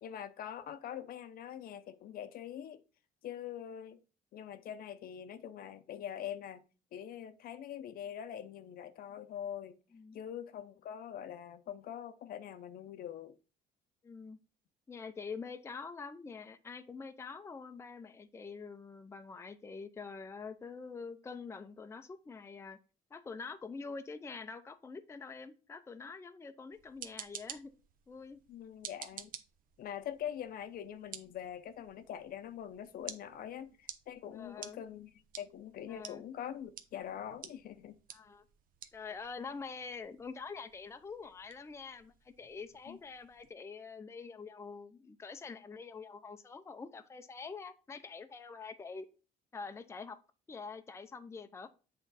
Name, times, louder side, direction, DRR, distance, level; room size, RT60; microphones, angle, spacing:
voice 1, 0.0-2.8 3.2-4.0 4.3-6.6 6.9-9.8 10.1-13.4 28.5-29.3 29.8-38.0 42.9-43.0, left 9 dB, 60° left, 0.6 m, -44 dB
voice 2, 14.0-14.4 14.9-22.8 23.1-27.7 28.1-28.4 34.3-34.8 35.9-36.2 38.1-38.4 38.9-49.1 49.5-50.2 50.5-51.7, left 4 dB, 15° left, 0.5 m, -46 dB
sound 1, 26.7-43.5, right 9 dB, 55° right, 0.7 m, -52 dB
8.0 x 3.7 x 4.0 m
cardioid pair, 110°, 17 cm